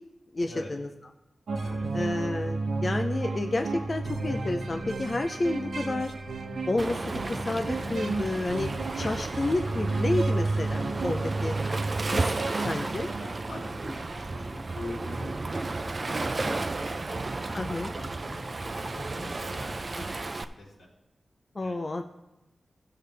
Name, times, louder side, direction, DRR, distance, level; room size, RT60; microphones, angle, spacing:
voice 1, 0.3-0.9 1.9-6.1 6.7-8.7 8.9-11.6 12.1-12.3 12.6-13.1 17.5-17.9 21.5-22.0, left 2 dB, 40° left, 5 dB, 0.5 m, -30 dB
sound 1, 1.5-13.8, right 3 dB, 90° right, 1.0 m, -32 dB
voice 2, 1.6-2.3 9.0-9.1 13.2-20.9 21.6-21.8, left 1 dB, 90° left, -6 dB, 3.3 m, -43 dB
Waves surf, 6.8-20.4, right 3 dB, 40° right, 0.5 m, -33 dB
15.0 x 6.6 x 3.4 m, 0.98 s
wide cardioid pair, 90°, 0 cm